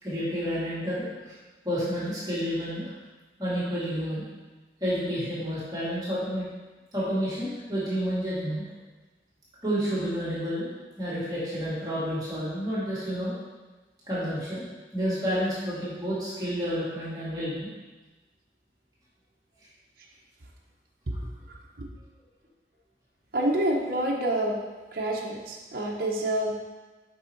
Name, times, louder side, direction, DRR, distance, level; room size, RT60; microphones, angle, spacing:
voice 1, 0.0-1.3 1.6-2.9 3.4-4.2 4.8-6.4 6.9-8.7 9.6-10.7 11.0-13.3 14.1-14.7 14.9-17.7, equal, 20° right, -11 dB, 2.3 m, -30 dB
voice 2, 21.5-21.9 23.3-24.6 24.9-26.6, right 1 dB, 55° right, -2 dB, 0.9 m, -28 dB
6.6 x 5.5 x 4.5 m, 1.2 s
head